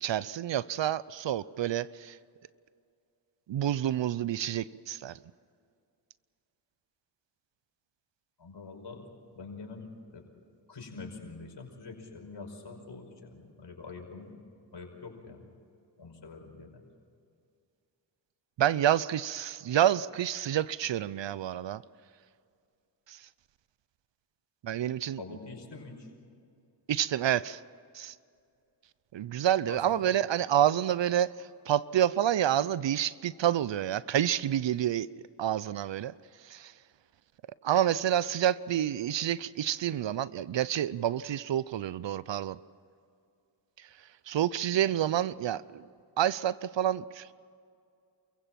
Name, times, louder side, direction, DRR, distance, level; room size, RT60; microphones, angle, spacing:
voice 1, 0.0-2.2 3.5-5.1 18.6-21.8 23.1-23.2 24.6-25.2 26.9-27.6 27.9-28.1 29.1-31.3 31.7-35.1 35.4-36.1 36.4-36.7 37.6-42.6 44.3-45.8 46.2-47.3, right 11 dB, 60° right, 19 dB, 0.7 m, -28 dB
voice 2, 8.4-9.0 9.3-10.2 10.7-14.3 14.7-15.5 16.0-16.8 25.2-26.1 29.7-30.0, left 4 dB, 55° left, 2 dB, 5.4 m, -45 dB
28.5 x 16.0 x 7.6 m, 2.4 s
supercardioid pair, 45°, 49 cm